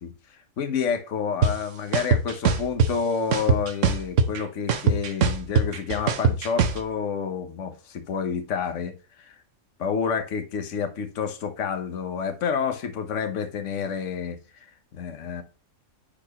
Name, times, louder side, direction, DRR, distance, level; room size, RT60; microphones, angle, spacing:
voice 1, 0.0-9.4 9.8-15.4, left 6 dB, 60° left, 1.3 m, -29 dB
sound 1, 1.4-1.5 1.9-2.9 3.3-4.4 4.7-6.8, right 5 dB, 60° right, 1.1 m, -20 dB
10.0 x 4.4 x 3.0 m
omnidirectional pair, 1.5 m